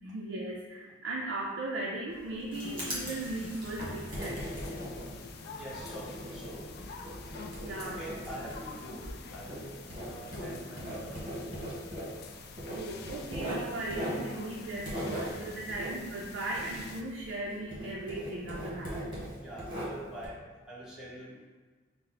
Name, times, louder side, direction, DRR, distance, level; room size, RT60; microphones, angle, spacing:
voice 1, 0.0-4.4 7.3-8.0 12.7-19.2, right 2 dB, 65° right, -3 dB, 0.4 m, -38 dB
Writing, 2.1-17.4 17.7-20.3, equal, 25° right, 1.4 m, -40 dB
sound 1, 2.5-17.0, left 4 dB, 55° left, 0.4 m, -46 dB
voice 2, 5.5-6.7 7.8-9.1 9.3-11.9 19.4-21.4, right 1 dB, 5° right, -7 dB, 0.9 m, -45 dB
5.4 x 2.0 x 3.9 m, 1.3 s
head